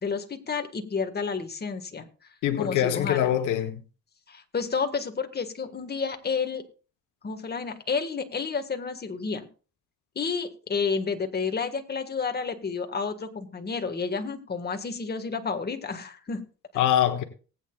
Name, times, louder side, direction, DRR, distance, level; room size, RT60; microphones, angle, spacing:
voice 1, 0.0-3.3 4.3-6.6 7.2-9.5 10.1-16.4, left 5 dB, 35° left, 1.7 m, -30 dB
voice 2, 2.4-3.8 16.7-17.2, left 11 dB, 90° left, 1.1 m, -24 dB
19.5 x 8.9 x 2.4 m
cardioid pair, 90°, 30 cm